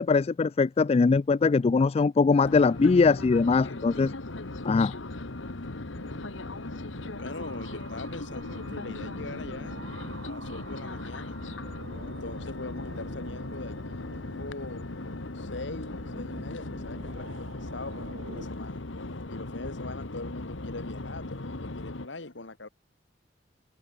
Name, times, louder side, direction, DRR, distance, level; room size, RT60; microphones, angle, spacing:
voice 1, 0.0-4.1 4.6-4.9, left 4 dB, 35° left, 0.3 m, -22 dB
sound 1, 2.4-22.1, left 2 dB, 85° left, 1.5 m, -38 dB
sound 2, 6.0-18.5, right 2 dB, 85° right, 5.1 m, -48 dB
voice 2, 7.2-9.8 10.2-11.4 12.1-14.8 15.3-18.8 19.3-22.7, left 2 dB, 70° left, 1.8 m, -41 dB
open air
head